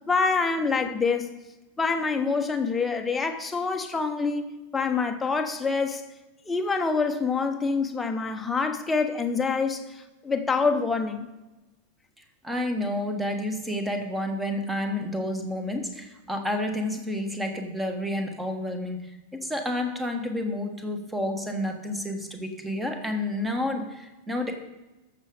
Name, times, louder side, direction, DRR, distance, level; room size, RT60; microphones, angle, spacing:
voice 1, 0.1-1.3 1.8-6.0 6.5-11.3, left 4 dB, 10° left, 5 dB, 1.0 m, -26 dB
voice 2, 12.4-24.6, left 1 dB, 5° right, 5 dB, 1.4 m, -30 dB
14.0 x 6.8 x 5.1 m, 1.1 s
figure-of-eight pair, 90°, 0 cm